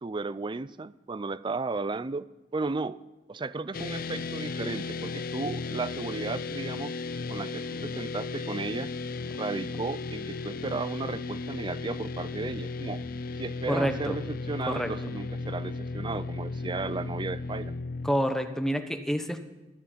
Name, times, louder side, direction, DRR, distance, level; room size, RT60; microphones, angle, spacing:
voice 1, 0.0-3.0 3.3-7.0 7.3-8.9 9.3-13.0 13.4-17.8, right 3 dB, 25° right, 17 dB, 0.4 m, -34 dB
sound 1, 3.7-18.1, left 3 dB, 55° left, 0.7 m, -35 dB
voice 2, 13.7-14.2 14.7-14.9 18.0-19.4, equal, 5° left, 7 dB, 1.0 m, -28 dB
13.0 x 9.4 x 9.7 m, 1.1 s
head